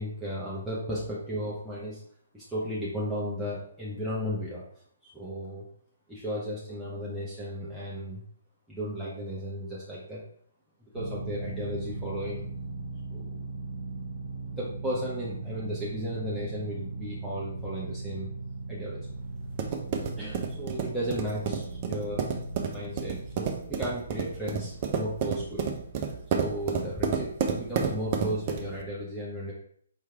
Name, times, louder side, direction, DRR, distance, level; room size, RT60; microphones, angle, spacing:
voice 1, 0.0-2.0 2.3-4.6 5.1-5.7 6.1-8.2 8.7-10.2 10.8-12.5 13.1-13.4 14.4-18.3 18.7-19.0 20.2-22.2 22.7-25.7 26.3-29.5, equal, ahead, -9 dB, 0.9 m, -35 dB
sound 1, 10.9-23.4, right 2 dB, 60° right, 0.9 m, -38 dB
sound 2, 19.0-28.8, right 6 dB, 30° right, 0.6 m, -31 dB
4.6 x 3.2 x 3.4 m, 0.62 s
figure-of-eight pair, 130°, 0 cm